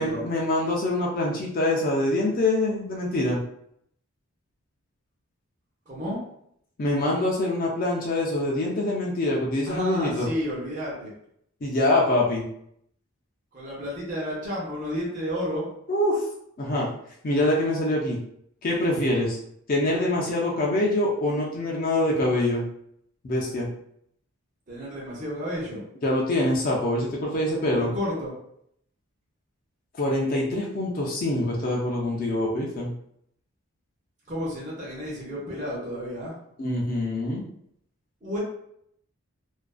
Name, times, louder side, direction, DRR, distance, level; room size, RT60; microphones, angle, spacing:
voice 1, 0.0-3.4 6.8-10.3 11.6-12.4 15.9-16.2 16.6-16.9 17.2-18.2 18.6-19.4 19.7-22.7 23.2-23.7 26.0-27.9 30.0-32.9 36.6-37.4, left 1 dB, 40° left, -3 dB, 0.4 m, -25 dB
voice 2, 5.9-6.2 9.7-11.1 13.5-15.7 24.7-25.8 27.6-28.3 34.3-36.3 38.2-38.4, equal, 35° right, -6 dB, 0.7 m, -31 dB
2.4 x 2.2 x 2.3 m, 0.71 s
head